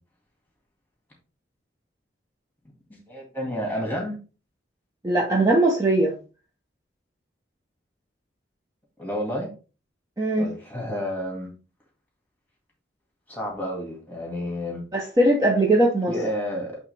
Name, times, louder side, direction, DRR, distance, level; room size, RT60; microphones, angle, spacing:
voice 1, 2.9-4.2 9.0-9.5 10.4-11.5 13.3-14.8 16.1-16.8, equal, 10° left, 0 dB, 2.1 m, -30 dB
voice 2, 5.0-6.2 10.2-10.5 14.9-16.1, right 1 dB, 20° right, -2 dB, 0.9 m, -20 dB
8.0 x 3.5 x 3.3 m, 0.34 s
head